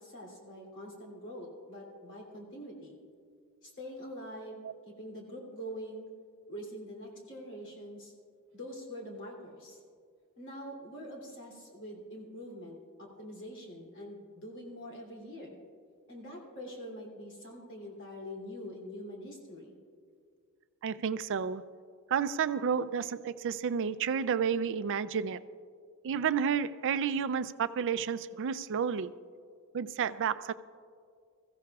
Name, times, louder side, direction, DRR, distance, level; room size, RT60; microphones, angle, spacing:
voice 1, 0.0-3.0 3.6-6.1 6.5-8.1 8.5-9.8 10.4-15.6 16.1-19.8, equal, 55° left, -2 dB, 2.9 m, -44 dB
voice 2, 20.8-21.6 22.1-25.4 26.0-29.1 29.7-30.5, right 7 dB, 55° right, 14 dB, 0.4 m, -31 dB
21.0 x 15.0 x 2.4 m, 2.2 s
head